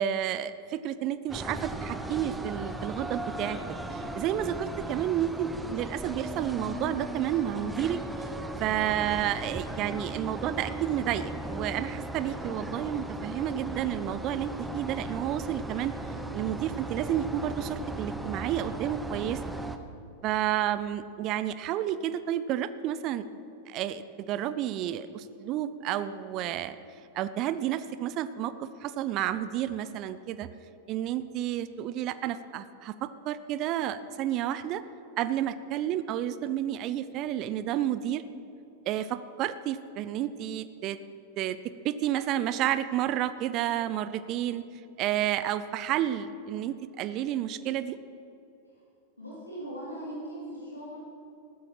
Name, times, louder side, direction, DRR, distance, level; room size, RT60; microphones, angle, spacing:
voice 1, 0.0-3.6 3.9-8.0 8.6-15.9 16.3-19.4 20.2-23.2 23.7-26.8 27.1-30.5 30.9-34.8 35.2-38.2 38.9-41.0 41.4-41.6 41.8-44.6 45.0-48.0, right 11 dB, 40° right, 14 dB, 0.5 m, -31 dB
sound 1, 1.3-19.8, right 2 dB, 5° right, 0.9 m, -37 dB
voice 2, 49.2-51.0, right 1 dB, 80° left, -7 dB, 3.8 m, -39 dB
15.0 x 12.0 x 5.7 m, 2.7 s
figure-of-eight pair, 90°, 0 cm